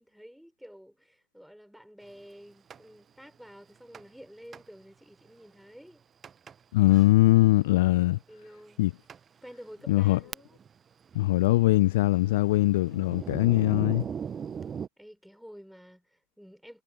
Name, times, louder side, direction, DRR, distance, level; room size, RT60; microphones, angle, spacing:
voice 1, 0.0-6.0 8.3-8.9 9.4-10.6 15.0-16.8, equal, ahead, 5.9 m, -50 dB
Thunder, 2.7-2.8 3.9-4.2 4.5-4.7 5.3-5.4 6.2-6.6 6.9-7.1 8.0-8.1 8.7-8.8 9.1-9.2 9.8-10.8 11.0-14.9, right 7 dB, 20° right, 1.1 m, -39 dB
voice 2, 6.7-8.2 8.8-8.9 9.9-10.2 11.1-14.0, left 18 dB, 55° left, 0.3 m, -21 dB
figure-of-eight pair, 90°, 0 cm